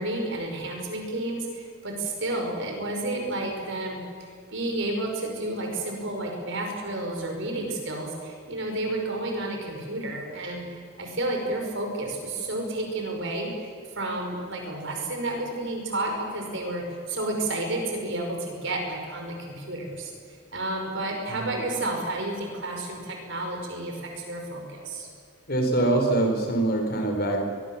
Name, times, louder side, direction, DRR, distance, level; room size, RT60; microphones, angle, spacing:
voice 1, 0.0-4.0 4.5-13.7 14.0-25.1, right 2 dB, 55° right, 2 dB, 5.7 m, -31 dB
voice 2, 25.5-27.4, right 2 dB, 45° left, 3 dB, 4.4 m, -23 dB
23.0 x 22.5 x 7.3 m, 2.1 s
head